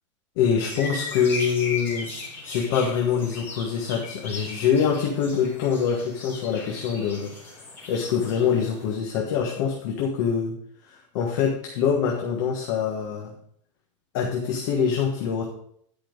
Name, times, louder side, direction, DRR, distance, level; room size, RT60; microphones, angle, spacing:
voice 1, 0.4-2.1 2.4-10.5 10.8-13.3 14.1-15.4, left 7 dB, 40° left, 0 dB, 1.4 m, -25 dB
sound 1, 0.6-8.9, left 3 dB, 10° left, 2.6 m, -38 dB
10.5 x 5.7 x 5.1 m, 0.66 s
supercardioid pair, 180°, 16 cm